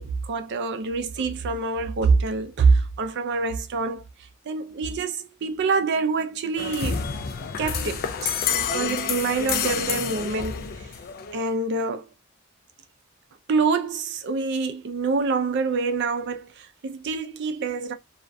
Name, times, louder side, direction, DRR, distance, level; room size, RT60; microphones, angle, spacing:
voice 1, 0.0-4.0 4.5-7.1 7.6-10.9 11.3-12.1 13.5-17.9, right 4 dB, 55° right, 0.4 m, -26 dB
sound 1, 6.6-11.5, left 6 dB, 45° left, 0.3 m, -28 dB
2.4 x 2.1 x 2.5 m
head